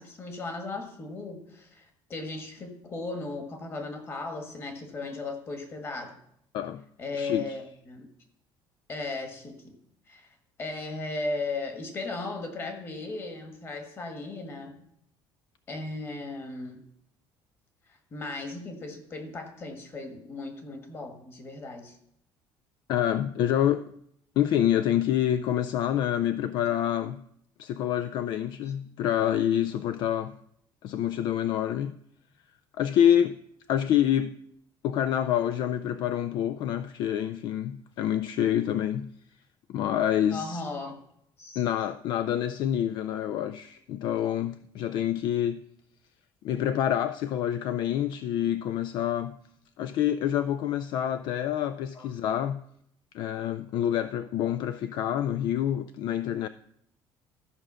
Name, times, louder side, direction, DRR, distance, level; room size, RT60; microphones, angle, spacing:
voice 1, 0.0-6.1 7.0-8.1 8.9-9.7 10.1-10.3 10.6-14.7 15.7-16.8 18.1-22.0 28.6-28.7 40.3-41.0 41.4-41.6 51.9-52.1 52.4-52.5, left 3 dB, 25° left, 1.6 m, -36 dB
voice 2, 7.2-7.6 22.9-23.9 24.4-27.2 27.6-30.3 30.8-31.9 32.8-33.4 33.7-34.4 34.8-39.1 39.7-40.6 41.6-45.6 46.4-49.4 49.8-52.6 53.1-56.5, left 10 dB, 55° left, 0.4 m, -27 dB
13.5 x 5.1 x 6.2 m
cardioid pair, 170°, 9 cm